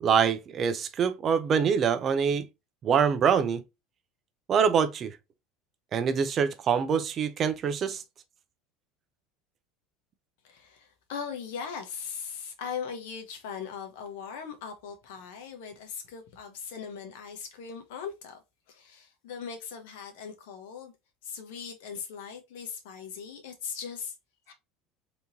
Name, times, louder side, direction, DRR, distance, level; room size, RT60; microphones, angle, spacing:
voice 1, 0.0-2.5 2.8-3.6 4.5-5.2 5.9-8.0, right 7 dB, 30° right, 0.4 m, -25 dB
voice 2, 10.4-18.4 18.7-20.9 21.2-24.1 24.5-24.6, left 6 dB, 85° left, 1.0 m, -39 dB
3.5 x 3.0 x 2.7 m
cardioid pair, 165°, 0 cm